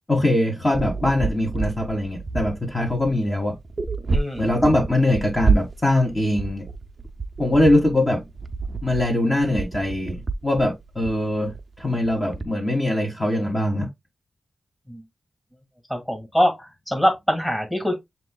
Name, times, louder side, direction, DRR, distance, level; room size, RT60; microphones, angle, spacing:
voice 1, 0.1-3.5 4.4-6.6 7.4-8.2 8.8-10.2 10.4-11.5 11.8-13.9, left 1 dB, 25° left, 1.6 m, -22 dB
sound 1, 0.7-12.4, right 4 dB, 50° right, 0.5 m, -29 dB
voice 2, 4.1-4.5 14.9-15.0 15.9-17.9, equal, 5° left, 1.8 m, -23 dB
7.5 x 2.9 x 2.2 m
wide cardioid pair, 75°, 0 cm